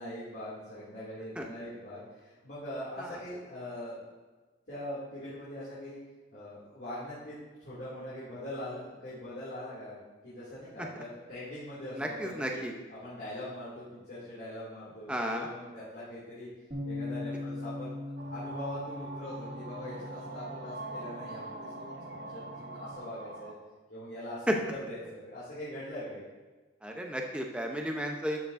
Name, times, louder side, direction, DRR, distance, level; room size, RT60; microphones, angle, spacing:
voice 1, 0.0-4.0 4.7-6.0 6.3-9.9 10.2-12.6 12.9-16.5 16.8-23.5 23.9-26.2, left 1 dB, 55° left, -11 dB, 2.5 m, -42 dB
voice 2, 11.9-12.7 15.1-15.5 24.5-24.6 26.8-28.4, equal, 5° right, 2 dB, 0.7 m, -32 dB
Bass guitar, 16.7-23.0, left 2 dB, 30° right, 2.2 m, -41 dB
sound 1, 18.2-23.5, right 2 dB, 60° right, 0.8 m, -43 dB
12.0 x 7.1 x 2.6 m, 1.3 s
head